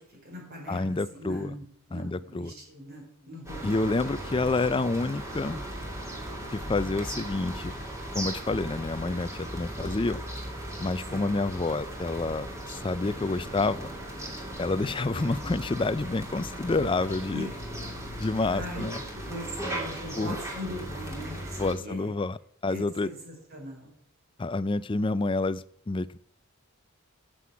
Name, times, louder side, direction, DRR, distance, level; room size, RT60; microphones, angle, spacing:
voice 1, 0.0-3.8 11.1-11.3 15.1-15.5 17.3-17.5 18.5-18.9 19.1-22.1 22.7-23.9, equal, 50° right, 0 dB, 4.8 m, -40 dB
voice 2, 0.7-1.5 1.9-2.5 3.6-5.6 6.5-7.7 8.1-10.2 10.8-13.9 14.6-17.5 18.2-19.0 20.2-20.4 21.6-23.1 24.4-26.2, left 3 dB, 25° left, 17 dB, 0.4 m, -28 dB
sound 1, 3.5-21.7, right 1 dB, 15° right, 2.7 m, -37 dB
9.5 x 7.8 x 8.4 m, 0.67 s
head